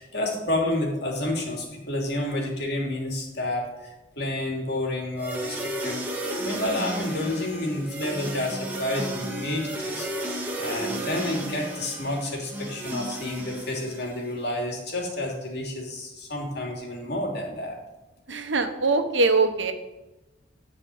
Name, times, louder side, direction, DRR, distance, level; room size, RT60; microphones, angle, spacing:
voice 1, 0.0-6.0 6.4-10.1 10.6-17.8, left 1 dB, 60° left, 0 dB, 3.0 m, -30 dB
sound 1, 5.2-14.3, right 1 dB, 10° right, 2.2 m, -33 dB
voice 2, 18.3-19.7, right 3 dB, 75° right, 7 dB, 1.2 m, -22 dB
12.5 x 4.9 x 7.8 m, 1.1 s
head